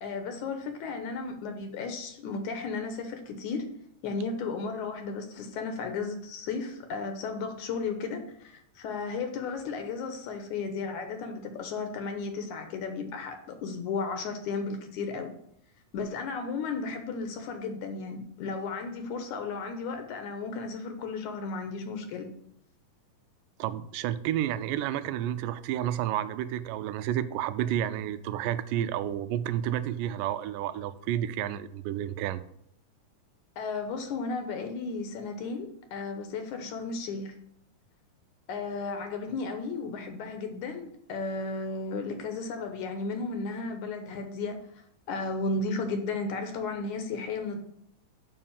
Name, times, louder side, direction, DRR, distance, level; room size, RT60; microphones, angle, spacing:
voice 1, 0.0-3.7 4.0-15.3 15.9-22.3 33.6-37.3 38.5-44.6 45.1-47.6, left 4 dB, 70° left, 6 dB, 2.1 m, -34 dB
voice 2, 23.6-32.4, right 11 dB, 85° right, 13 dB, 2.2 m, -30 dB
7.1 x 5.5 x 7.1 m, 0.71 s
omnidirectional pair, 3.8 m